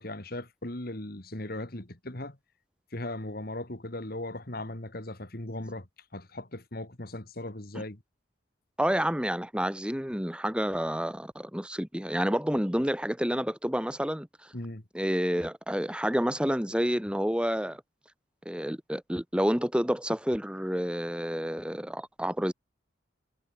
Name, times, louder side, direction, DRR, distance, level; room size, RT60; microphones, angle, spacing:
voice 1, 0.0-2.4 2.9-5.9 6.1-8.0 14.5-14.8, left 1 dB, 50° left, 2.4 m, -38 dB
voice 2, 8.8-14.5 14.9-17.8 18.5-22.5, equal, 5° right, 2.4 m, -29 dB
head